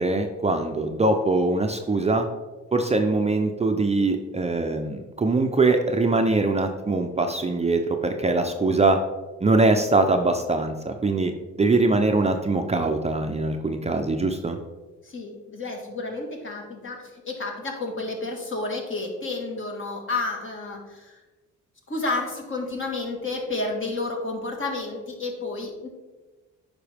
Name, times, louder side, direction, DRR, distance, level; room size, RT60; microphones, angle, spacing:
voice 1, 0.0-2.3 2.7-9.0 9.4-11.3 11.6-14.6, right 3 dB, 20° right, 5 dB, 0.6 m, -22 dB
voice 2, 15.0-21.2 21.9-25.9, left 3 dB, 40° left, 1 dB, 1.8 m, -31 dB
8.6 x 5.2 x 3.5 m, 1.2 s
cardioid pair, 90°, 30 cm